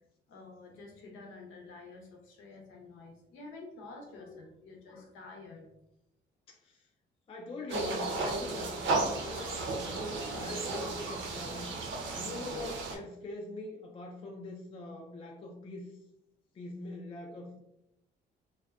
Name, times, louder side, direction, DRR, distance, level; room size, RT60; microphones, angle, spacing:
voice 1, 0.3-5.8, left 3 dB, 85° left, 0 dB, 0.7 m, -49 dB
voice 2, 6.5-6.9 7.3-11.7 12.1-15.9 16.5-17.6, left 2 dB, 30° left, 0 dB, 0.4 m, -42 dB
sound 1, 7.7-13.0, right 3 dB, 70° right, 0.6 m, -34 dB
2.6 x 2.1 x 2.3 m, 0.82 s
cardioid pair, 90°, 20 cm